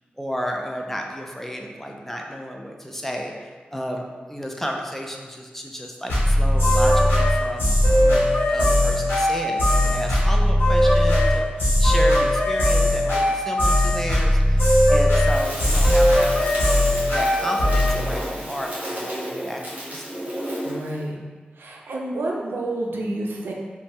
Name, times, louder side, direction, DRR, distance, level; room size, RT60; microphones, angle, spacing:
voice 1, 0.2-16.5 16.8-20.3, equal, 10° left, 1 dB, 0.3 m, -32 dB
sound 1, 6.1-18.0, left 1 dB, 80° left, 1.0 m, -18 dB
Crackle, 15.2-20.9, equal, 50° right, 1.0 m, -32 dB
voice 2, 20.6-21.2 21.6-23.5, right 2 dB, 85° right, -1 dB, 0.4 m, -29 dB
2.7 x 2.1 x 3.0 m, 1.5 s
wide cardioid pair, 70°, 4 cm